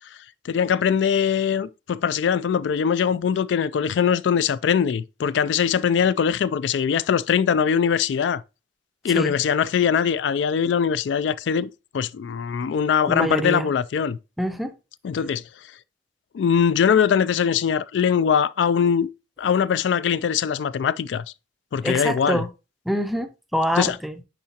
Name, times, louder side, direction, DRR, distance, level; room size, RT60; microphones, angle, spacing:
voice 1, 0.4-8.4 9.0-14.2 15.0-15.4 16.3-19.1 19.4-21.2 21.7-22.4 23.8-24.0, left 7 dB, 75° left, 0.3 m, -22 dB
voice 2, 13.1-13.7 14.4-14.7 21.8-22.5 22.9-24.1, equal, ahead, 0.4 m, -25 dB
9.9 x 3.7 x 2.8 m
head